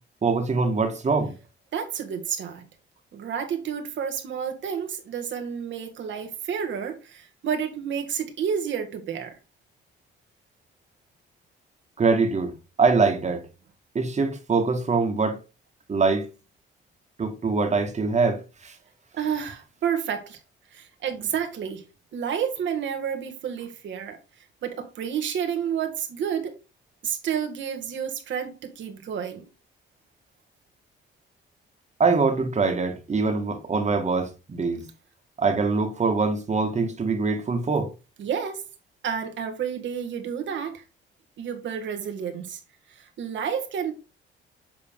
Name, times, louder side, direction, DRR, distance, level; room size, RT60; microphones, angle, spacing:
voice 1, 0.2-1.3 12.0-13.5 13.9-15.4 15.9-16.3 17.2-18.7 32.0-34.8 35.4-37.9, right 4 dB, 35° right, 1.7 m, -23 dB
voice 2, 1.7-2.6 3.1-9.4 19.1-20.4 20.7-21.8 22.1-24.2 24.6-26.6 27.0-29.4 38.2-38.6 39.0-40.8 41.4-42.6 42.9-43.9, right 8 dB, 70° right, 1.7 m, -30 dB
7.6 x 4.0 x 3.6 m
cardioid pair, 90°, 20 cm